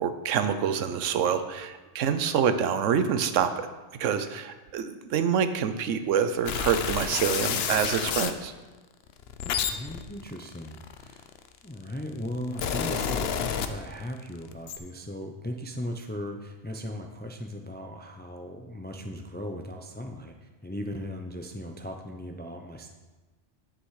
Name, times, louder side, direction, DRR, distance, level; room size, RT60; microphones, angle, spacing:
voice 1, 0.0-8.5, right 7 dB, 85° right, 10 dB, 1.0 m, -26 dB
sound 1, 6.5-8.4 9.1-11.5 12.2-14.2 14.5-14.8, left 7 dB, 65° left, 0.8 m, -30 dB
voice 2, 9.4-11.3 11.6-22.9, left 1 dB, 15° left, 4 dB, 0.4 m, -37 dB
9.9 x 6.0 x 4.8 m, 1.2 s
omnidirectional pair, 1.3 m